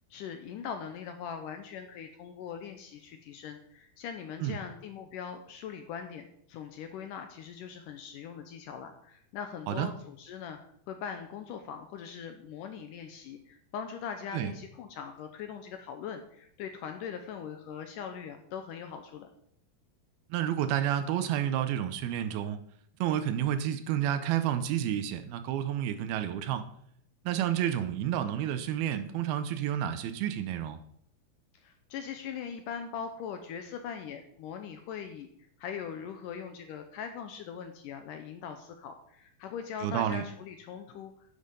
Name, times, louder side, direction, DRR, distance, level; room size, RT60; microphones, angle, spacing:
voice 1, 0.1-10.6 10.9-19.3 31.6-35.3 35.6-41.1, left 7 dB, 75° left, 6 dB, 2.0 m, -41 dB
voice 2, 20.3-22.6 23.0-26.7 27.3-30.8 39.8-40.2, right 10 dB, 90° right, 10 dB, 2.7 m, -30 dB
10.5 x 7.3 x 5.2 m, 0.67 s
omnidirectional pair, 4.4 m